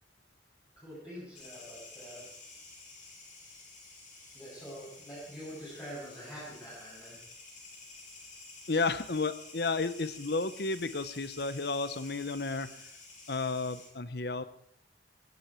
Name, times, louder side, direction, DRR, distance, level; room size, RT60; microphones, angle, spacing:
voice 1, 0.8-2.2 4.3-7.2, equal, 15° left, -10 dB, 7.8 m, -45 dB
sound 1, 1.3-13.9, left 3 dB, 45° left, 6.4 m, -51 dB
voice 2, 8.7-12.9 13.3-14.4, left 3 dB, 60° left, 14 dB, 0.9 m, -32 dB
18.5 x 16.0 x 4.6 m, 0.69 s
head